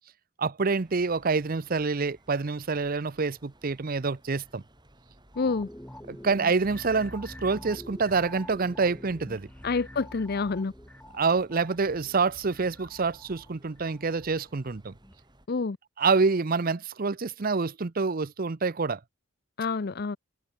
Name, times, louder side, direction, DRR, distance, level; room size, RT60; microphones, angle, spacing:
voice 1, 0.4-4.6 6.1-9.5 11.1-14.9 16.0-19.0, right 4 dB, 45° right, 0.7 m, -27 dB
sound 1, 0.8-15.5, right 1 dB, 20° right, 5.3 m, -58 dB
sound 2, 5.3-14.6 15.0-15.1, equal, 10° left, 3.1 m, -46 dB
voice 2, 5.4-5.7 9.6-10.7 15.5-15.8 19.6-20.2, left 4 dB, 45° left, 0.6 m, -28 dB
head